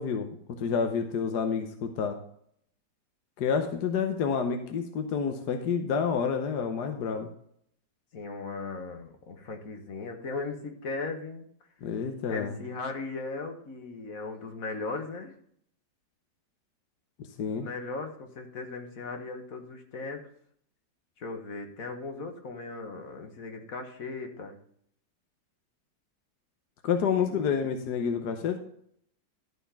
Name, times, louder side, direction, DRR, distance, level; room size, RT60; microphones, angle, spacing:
voice 1, 0.0-2.2 3.4-7.3 11.8-12.5 17.4-17.7 26.8-28.6, left 6 dB, 65° left, 6 dB, 1.5 m, -29 dB
voice 2, 8.1-11.4 12.3-15.3 17.4-20.3 21.2-24.6 27.2-27.5, left 3 dB, 50° left, 4 dB, 1.7 m, -38 dB
13.0 x 4.3 x 5.7 m, 0.65 s
omnidirectional pair, 1.9 m